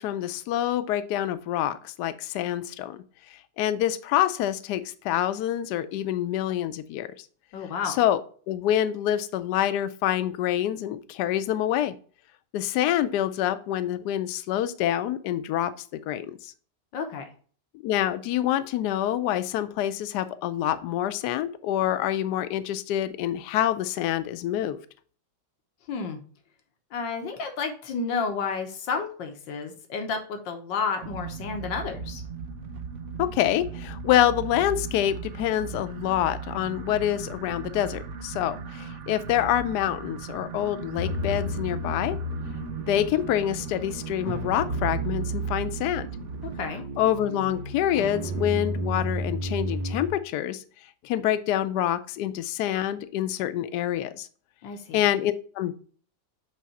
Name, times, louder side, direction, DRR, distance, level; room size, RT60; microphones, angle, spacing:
voice 1, 0.0-3.0 3.3-7.2 7.8-8.2 8.5-11.9 12.5-15.7 16.1-16.5 17.8-24.8 33.2-42.2 42.9-46.1 47.0-50.6 51.0-54.3 54.9-55.7, left 12 dB, 70° left, 12 dB, 1.1 m, -26 dB
voice 2, 7.5-8.0 16.9-17.2 25.9-26.2 26.9-32.2 46.6-46.8 54.6-55.0, left 5 dB, 85° left, 5 dB, 1.7 m, -31 dB
sound 1, 31.0-46.7, right 5 dB, 60° right, 0.8 m, -38 dB
sound 2, 41.0-50.1, right 1 dB, 90° right, 2.1 m, -32 dB
8.4 x 3.3 x 4.1 m, 0.43 s
omnidirectional pair, 2.0 m